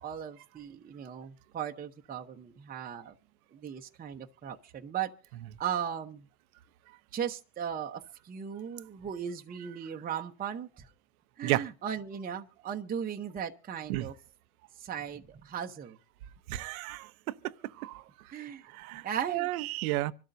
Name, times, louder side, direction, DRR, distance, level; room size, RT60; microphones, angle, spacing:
voice 1, 0.0-3.1 3.5-5.1 5.6-6.2 7.1-10.9 11.4-14.1 14.8-16.0 18.3-18.6 19.0-19.5, right 8 dB, 20° right, 0.9 m, -37 dB
voice 2, 16.5-17.1 17.4-18.0 18.7-20.1, right 17 dB, 75° right, 0.8 m, -32 dB
25.5 x 13.0 x 2.7 m
supercardioid pair, 110°, 43 cm